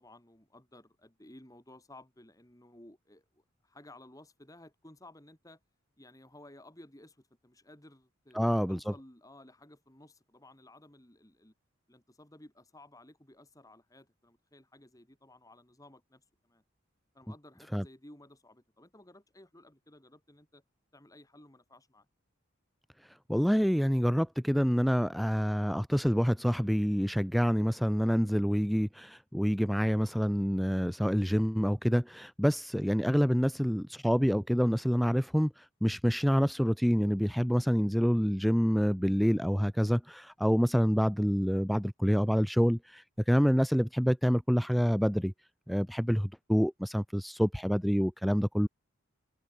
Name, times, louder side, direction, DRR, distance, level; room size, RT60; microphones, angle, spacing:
voice 1, 0.0-5.6 6.0-11.5 11.9-16.6 17.1-20.6 20.9-22.1, left 1 dB, 15° left, 2.5 m, -56 dB
voice 2, 8.3-8.9 17.7-17.8 23.0-45.3 45.7-48.7, equal, ahead, 0.3 m, -27 dB
head